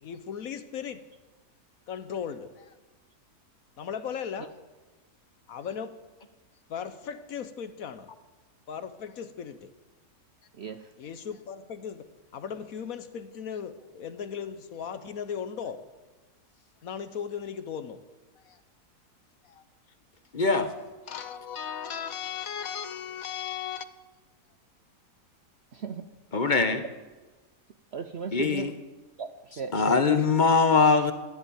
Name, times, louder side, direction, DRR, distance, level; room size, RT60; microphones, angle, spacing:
voice 1, 0.0-1.1 1.9-2.7 3.8-4.5 5.5-6.0 6.7-8.1 8.7-9.7 11.0-12.1 12.3-15.8 16.8-18.0 18.4-18.6 19.4-19.6 21.1-23.8, left 7 dB, 65° left, 1.3 m, -37 dB
voice 2, 10.5-10.9 25.7-26.1 26.7-26.8 27.9-28.7 29.2-30.2, right 6 dB, 55° right, 0.8 m, -36 dB
voice 3, 20.3-20.7 26.3-26.8 28.3-28.7 29.7-31.1, left 4 dB, 35° left, 1.0 m, -22 dB
14.5 x 11.0 x 8.5 m
omnidirectional pair, 1.7 m